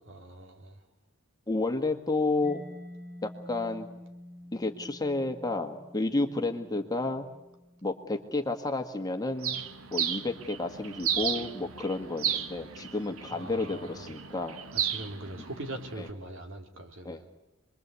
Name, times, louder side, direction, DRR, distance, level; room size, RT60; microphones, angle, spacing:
voice 1, 0.1-0.8 13.3-14.1 14.7-17.3, right 1 dB, 65° right, 3.2 m, -42 dB
voice 2, 1.5-2.6 3.2-3.9 4.5-7.3 7.8-9.6 9.9-14.6 16.0-16.1 17.0-17.2, left 2 dB, 20° left, 1.6 m, -31 dB
Mallet percussion, 2.4-9.9, left 1 dB, 25° right, 5.7 m, -50 dB
Bird, 9.4-16.1, right 8 dB, 80° right, 1.2 m, -34 dB
28.0 x 22.0 x 8.3 m
head